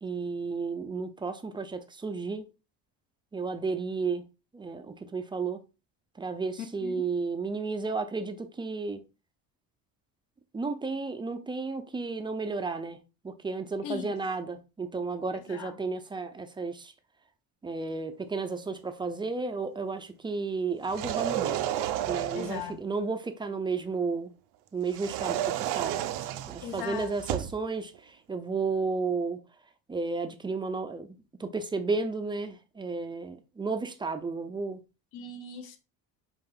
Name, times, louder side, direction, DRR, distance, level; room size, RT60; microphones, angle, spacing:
voice 1, 0.0-2.5 3.3-4.2 4.5-5.6 6.2-9.0 10.5-13.0 13.2-16.9 17.6-21.6 22.1-24.3 24.7-26.0 26.5-29.4 29.9-34.8, right 4 dB, 15° right, 0.3 m, -33 dB
voice 2, 6.6-7.1 13.8-14.2 15.5-15.8 22.3-22.8 26.6-27.1 35.1-35.8, left 7 dB, 70° left, 0.9 m, -38 dB
sound 1, 20.8-22.7 24.9-27.6, right 12 dB, 80° right, 0.6 m, -32 dB
5.5 x 2.4 x 3.4 m
cardioid pair, 120°, 39 cm